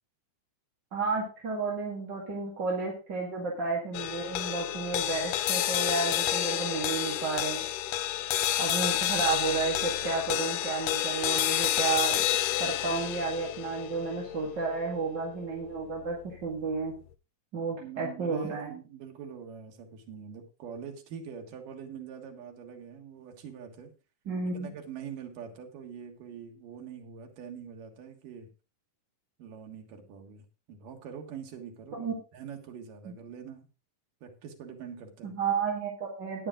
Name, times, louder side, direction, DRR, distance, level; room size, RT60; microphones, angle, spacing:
voice 1, 0.9-7.6 8.6-12.2 12.6-16.9 17.5-18.7 24.3-24.7 31.9-32.1 33.1-33.2 35.2-36.5, right 4 dB, 35° right, -2 dB, 2.4 m, -32 dB
sound 1, 3.9-16.4, left 12 dB, 80° left, 1.5 m, -30 dB
voice 2, 17.8-23.9 24.5-28.5 29.4-30.4 30.7-33.7 34.2-35.3, right 7 dB, 90° right, 3 dB, 3.3 m, -44 dB
12.0 x 10.0 x 3.7 m, 0.32 s
omnidirectional pair, 3.7 m